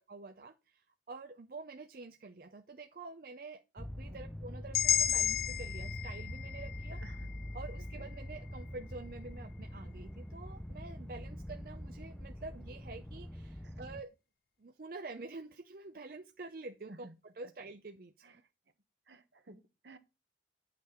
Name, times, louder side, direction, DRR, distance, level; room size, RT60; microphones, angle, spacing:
voice 1, 0.1-7.0 7.5-14.1 14.6-17.1 17.3-18.1, right 3 dB, 50° right, 0.5 m, -48 dB
sound 1, 3.8-14.0, equal, 5° left, 0.4 m, -44 dB
sound 2, 4.7-8.8, left 9 dB, 55° left, 0.6 m, -34 dB
voice 2, 19.1-20.0, right 2 dB, 75° right, 1.1 m, -54 dB
9.2 x 5.9 x 4.3 m
head